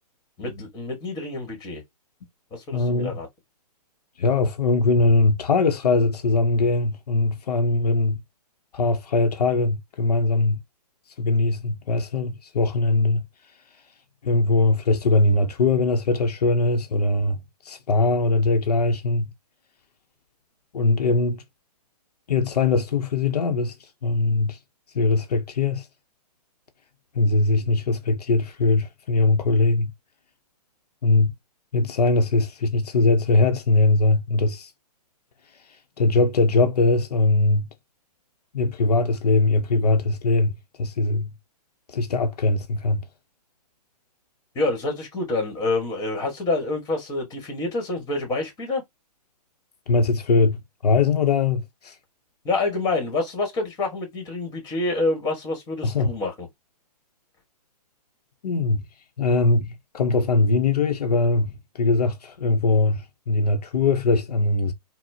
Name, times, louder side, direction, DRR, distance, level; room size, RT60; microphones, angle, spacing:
voice 1, 0.4-1.8 2.5-3.3 44.5-48.8 52.4-56.5, left 2 dB, 20° left, 1.2 m, -27 dB
voice 2, 2.7-3.2 4.2-8.2 8.7-10.6 11.2-13.2 14.2-19.3 20.7-21.4 22.3-24.6 24.9-25.9 27.1-29.9 31.0-31.3 31.7-34.7 36.0-37.7 38.5-40.5 40.8-41.3 41.9-43.0 49.9-52.0 55.8-56.1 58.4-58.8 59.2-64.7, left 3 dB, 70° left, 0.6 m, -21 dB
4.2 x 2.0 x 2.7 m
hypercardioid pair, 140°, 21 cm